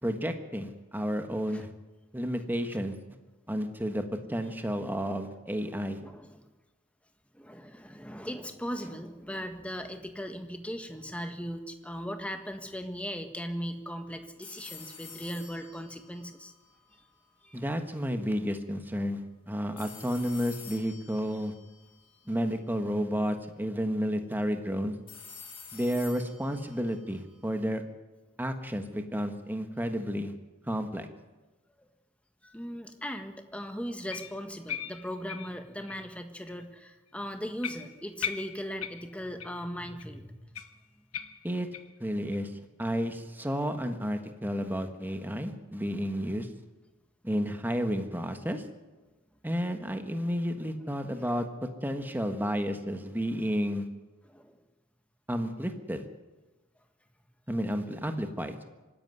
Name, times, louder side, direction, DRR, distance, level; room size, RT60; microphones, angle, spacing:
voice 1, 0.0-1.7 2.1-2.9 3.5-6.0 17.5-21.5 22.3-24.9 25.7-27.8 28.4-30.3 30.7-31.1 41.4-41.7 42.0-42.5 42.8-46.5 47.2-48.6 49.4-51.5 51.8-53.9 55.3-56.0 57.5-58.6, equal, 10° right, 6 dB, 1.4 m, -31 dB
voice 2, 6.0-6.4 7.3-16.5 17.4-17.6 31.8-31.9 32.4-40.4 44.6-44.7 54.2-54.6, equal, 5° left, 6 dB, 1.5 m, -38 dB
sound 1, 14.4-17.4 19.8-22.9 25.1-27.7, left 6 dB, 25° left, 3.7 m, -50 dB
sound 2, 34.1-36.1 36.5-36.6 37.1-37.2 37.6-39.7 40.0-40.1 40.5-42.0 42.3-42.4 42.9-43.0 43.5-43.6, left 9 dB, 80° left, 1.2 m, -40 dB
25.0 x 11.0 x 9.6 m, 1.2 s
head